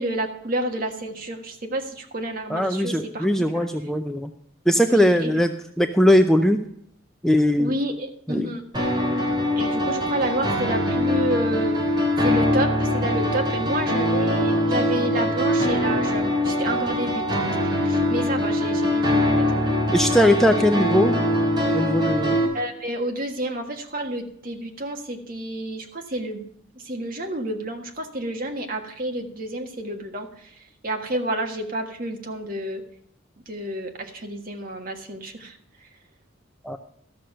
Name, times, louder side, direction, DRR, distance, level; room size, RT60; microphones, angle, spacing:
voice 1, 0.0-3.7 4.8-5.3 7.6-8.6 9.6-11.8 12.2-19.7 22.5-26.4 26.7-32.8 33.5-35.9, right 1 dB, 45° right, 4 dB, 1.5 m, -30 dB
voice 2, 2.5-4.3 4.7-6.6 7.2-7.7 8.3-8.5 19.9-21.2 21.7-22.4 36.6-36.8, equal, ahead, 6 dB, 0.5 m, -20 dB
sound 1, 8.7-22.5, left 1 dB, 20° right, 2.7 m, -22 dB
13.0 x 6.4 x 5.5 m, 0.70 s
head